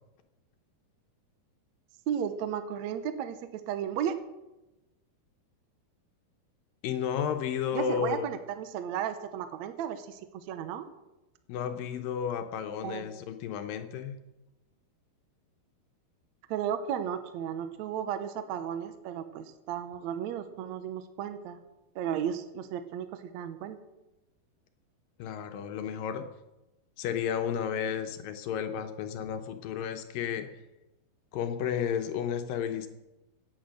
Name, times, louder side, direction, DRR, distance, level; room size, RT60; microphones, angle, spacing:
voice 1, 2.1-4.2 7.7-10.9 12.8-13.1 16.5-21.6 21.9-23.8, right 9 dB, 80° right, 10 dB, 1.6 m, -34 dB
voice 2, 6.8-8.3 11.5-14.2 25.2-26.3 27.0-30.5 31.3-32.9, left 8 dB, 75° left, 7 dB, 2.4 m, -32 dB
16.5 x 9.0 x 6.4 m, 1.0 s
omnidirectional pair, 4.4 m